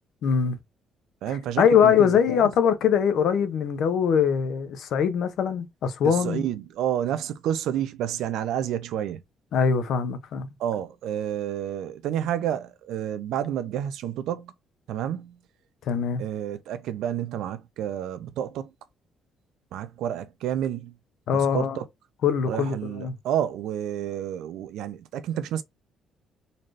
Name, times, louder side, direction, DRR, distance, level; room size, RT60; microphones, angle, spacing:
voice 1, 0.2-0.6 1.6-6.4 9.5-10.5 15.9-16.2 21.3-21.8 22.2-23.1, left 7 dB, 60° left, 0.7 m, -22 dB
voice 2, 1.2-2.5 6.0-9.2 10.6-14.5 14.9-15.4 16.2-18.7 19.7-20.9 21.3-21.9 22.5-25.6, right 10 dB, 85° right, 0.5 m, -30 dB
4.1 x 3.3 x 2.5 m
cardioid pair, 160°, 0 cm